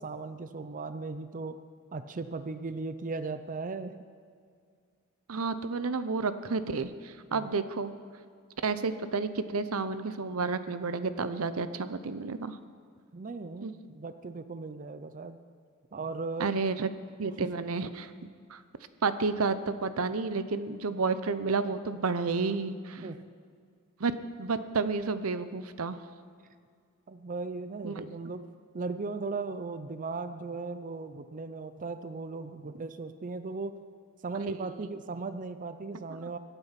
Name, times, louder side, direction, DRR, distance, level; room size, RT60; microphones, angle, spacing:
voice 1, 0.0-1.6 1.9-4.0 7.3-7.5 13.1-15.4 15.9-16.6 22.9-23.2 27.1-28.4 28.7-33.8 34.2-36.4, right 3 dB, 40° right, 11 dB, 0.5 m, -37 dB
voice 2, 5.3-7.9 8.6-12.6 13.6-13.7 16.4-16.9 17.2-18.1 18.5-18.6 19.0-23.0 24.0-24.1 24.4-26.0 27.8-28.0 34.6-34.7, right 4 dB, 80° right, 12 dB, 0.7 m, -31 dB
23.0 x 9.0 x 5.8 m, 2.2 s
head